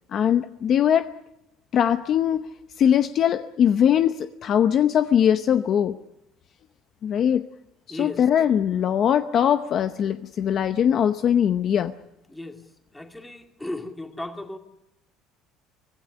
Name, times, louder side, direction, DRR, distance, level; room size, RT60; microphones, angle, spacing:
voice 1, 0.1-1.1 1.7-2.4 2.8-6.0 7.0-7.4 7.9-11.9, left 9 dB, 40° left, 10 dB, 0.8 m, -21 dB
voice 2, 7.9-8.3 12.3-12.6 12.9-14.6, left 1 dB, 5° left, 5 dB, 2.2 m, -35 dB
24.5 x 16.0 x 9.9 m, 0.86 s
cardioid pair, 165°, 0 cm